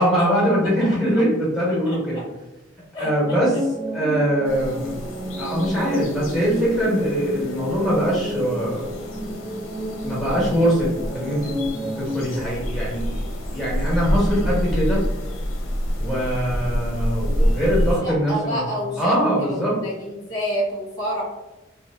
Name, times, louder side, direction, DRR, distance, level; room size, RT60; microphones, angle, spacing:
voice 1, 0.0-2.2 3.0-3.5 3.9-4.9 5.4-8.9 10.0-15.0 16.0-18.7 19.0-19.8, equal, ahead, -7 dB, 1.4 m, -22 dB
voice 2, 2.9-3.4 18.0-19.1 19.4-21.2, equal, 20° left, -9 dB, 0.8 m, -28 dB
sound 1, 3.0-12.4, equal, 25° right, 0.5 m, -32 dB
sound 2, 4.4-18.0, equal, 80° left, 0.7 m, -28 dB
3.2 x 2.1 x 3.5 m, 1.0 s
head